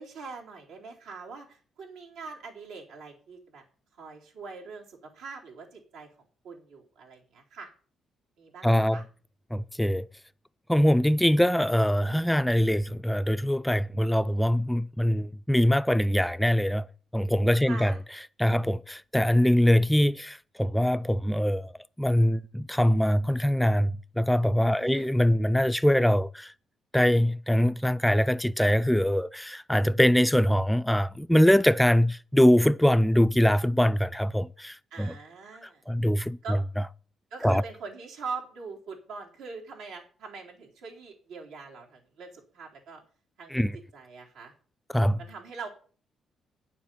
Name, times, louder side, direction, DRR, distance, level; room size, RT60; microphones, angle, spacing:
voice 1, 0.0-3.6 4.0-6.1 6.4-7.7 8.4-9.0 17.6-18.0 24.8-25.1 34.9-35.8 36.4-36.6 37.3-43.0 43.4-43.7 43.9-44.5 45.2-45.7, right 4 dB, 90° right, 4.0 m, -42 dB
voice 2, 8.6-9.0 9.5-10.1 10.7-16.8 17.1-17.9 18.4-21.7 22.0-26.5 26.9-35.1 35.9-36.4 37.4-37.6 43.5-43.7 44.9-45.2, equal, 5° left, 0.4 m, -23 dB
9.5 x 7.6 x 7.2 m
cardioid pair, 90°, 0 cm